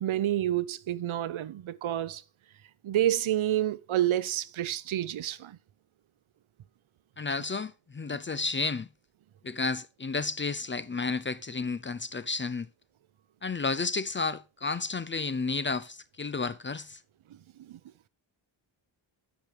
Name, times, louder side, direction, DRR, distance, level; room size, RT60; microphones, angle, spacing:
voice 1, 0.0-2.2 2.8-5.6 17.7-17.8, right 12 dB, 85° right, 0.8 m, -29 dB
voice 2, 7.2-8.9 9.4-12.7 13.4-17.0, left 4 dB, 25° left, 0.4 m, -32 dB
10.5 x 6.1 x 5.1 m
wide cardioid pair, 110°, 47 cm